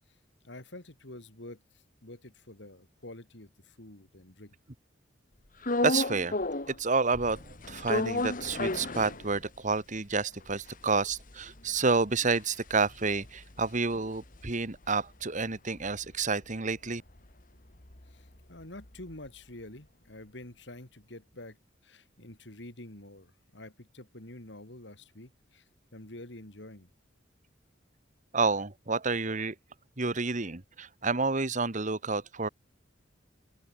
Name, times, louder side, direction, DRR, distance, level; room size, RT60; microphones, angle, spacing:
voice 1, 0.4-1.6 2.0-4.5 18.1-21.6 21.8-25.6 25.9-26.9, left 1 dB, 65° left, 3.5 m, -47 dB
sound 1, 5.6-6.8 7.1-9.7 10.1-10.2 10.4-14.9 15.2-19.3, left 2 dB, 45° left, 2.2 m, -35 dB
voice 2, 5.8-6.4 6.7-17.0 28.3-29.5 30.0-32.5, right 4 dB, 40° right, 1.6 m, -29 dB
open air
head